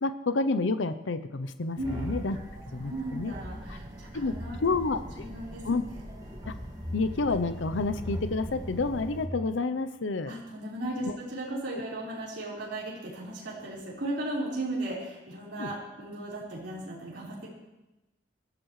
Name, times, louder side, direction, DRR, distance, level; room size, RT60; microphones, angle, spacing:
voice 1, 0.0-2.4 2.7-3.3 3.7-3.8 4.1-5.0 5.6-5.8 6.5-6.6 6.9-10.3 11.0-11.2 15.6-15.7, left 3 dB, 85° left, 10 dB, 0.6 m, -29 dB
sound 1, 1.8-9.3, equal, 20° right, 1.9 m, -40 dB
voice 2, 2.8-4.6 5.2-5.6 5.9-6.0 10.3-17.5, right 1 dB, 65° right, -6 dB, 4.5 m, -36 dB
22.0 x 14.0 x 3.2 m, 0.99 s
head